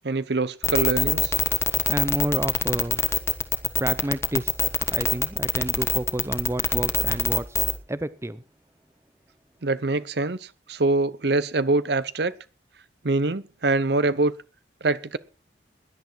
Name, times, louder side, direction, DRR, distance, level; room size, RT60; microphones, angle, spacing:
voice 1, 0.0-1.3 9.6-12.3 13.0-14.3 14.8-15.2, right 2 dB, 65° right, 0.8 m, -24 dB
sound 1, 0.6-7.8, left 4 dB, 15° left, 1.3 m, -23 dB
voice 2, 1.9-3.0 3.8-4.5 4.9-7.6 7.9-8.4, right 1 dB, 15° right, 0.6 m, -29 dB
17.0 x 10.5 x 4.6 m
head